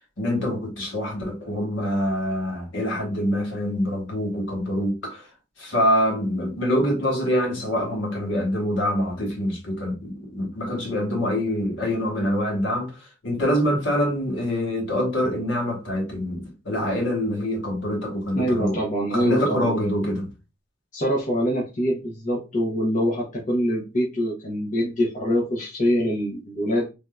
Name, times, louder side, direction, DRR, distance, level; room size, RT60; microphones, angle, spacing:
voice 1, 0.2-5.3 5.6-18.8 19.1-20.3, equal, 65° left, 1.2 m, -25 dB
voice 2, 18.3-20.0 20.9-26.9, equal, 40° left, 0.7 m, -24 dB
3.2 x 2.6 x 2.2 m
head